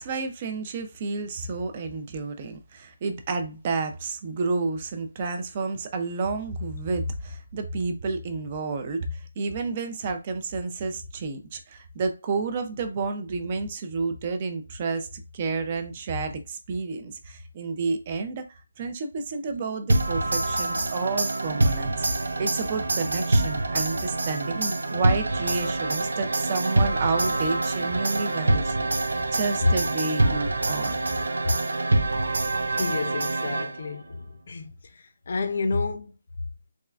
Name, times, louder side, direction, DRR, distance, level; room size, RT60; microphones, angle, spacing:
voice 1, 0.0-31.0, right 4 dB, 20° right, 0.4 m, -30 dB
sound 1, 19.9-34.0, right 2 dB, 90° right, 0.5 m, -25 dB
voice 2, 32.7-36.1, left 3 dB, 40° left, 0.6 m, -28 dB
3.5 x 3.1 x 2.3 m
hypercardioid pair, 175°, 0 cm